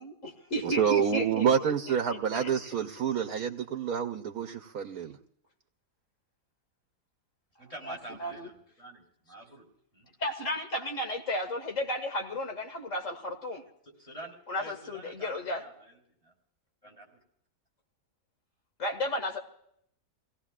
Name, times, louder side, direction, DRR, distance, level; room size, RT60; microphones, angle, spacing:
voice 1, 0.0-1.7 2.1-2.5 7.9-8.5 10.2-13.6 14.5-15.6 18.8-19.4, left 1 dB, 60° left, 2.1 m, -33 dB
voice 2, 0.6-5.2, right 8 dB, 85° right, 1.3 m, -28 dB
voice 3, 7.6-9.6 9.9-10.1 13.8-16.3 16.8-17.2, right 1 dB, 25° left, 4.0 m, -47 dB
26.5 x 17.5 x 2.4 m
omnidirectional pair, 1.5 m